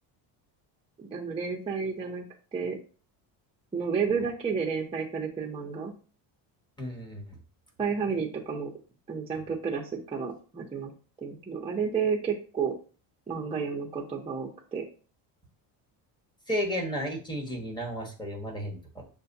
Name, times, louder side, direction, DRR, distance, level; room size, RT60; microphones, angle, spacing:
voice 1, 1.0-2.2 2.5-2.8 3.7-5.9 7.8-8.7 9.1-10.9 11.2-12.7 13.3-14.8, right 5 dB, 15° right, -1 dB, 0.6 m, -31 dB
voice 2, 6.8-7.4 16.5-19.0, equal, 10° left, 0 dB, 1.2 m, -33 dB
6.6 x 2.2 x 2.7 m, 0.37 s
cardioid pair, 120°, 47 cm